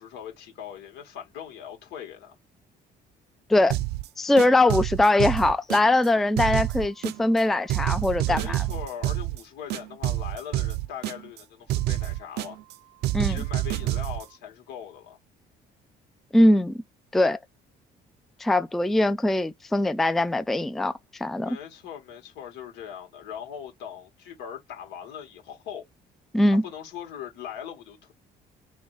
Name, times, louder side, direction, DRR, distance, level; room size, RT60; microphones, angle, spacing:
voice 1, 0.0-2.3 8.2-12.6 13.3-15.2 21.4-25.8 26.6-28.1, left 9 dB, 85° left, 2.0 m, -40 dB
sound 1, 3.7-4.1 4.4-6.1 6.4-7.4 7.7-9.4 9.7-11.4 11.7-12.7 13.0-14.2, right 15 dB, 75° right, 0.4 m, -28 dB
voice 2, 4.2-8.6 13.1-13.4 16.3-16.8 17.1-17.4 18.4-21.6 26.3-26.6, left 1 dB, ahead, 0.3 m, -22 dB
3.9 x 3.2 x 3.3 m
cardioid pair, 110°, 17 cm